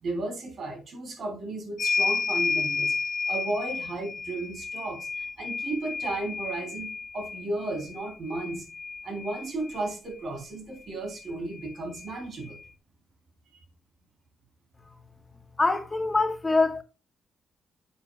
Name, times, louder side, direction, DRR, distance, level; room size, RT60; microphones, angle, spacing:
voice 1, 0.0-2.9 3.3-8.7 9.0-12.6 13.5-13.6, right 2 dB, 55° right, 3.4 m, -34 dB
sound 1, 1.8-9.9 11.2-11.3 11.6-12.6, left 4 dB, 40° left, 1.0 m, -32 dB
voice 2, 15.6-16.8, left 3 dB, 20° left, 0.9 m, -24 dB
9.5 x 7.3 x 2.3 m
cardioid pair, 120°, 0 cm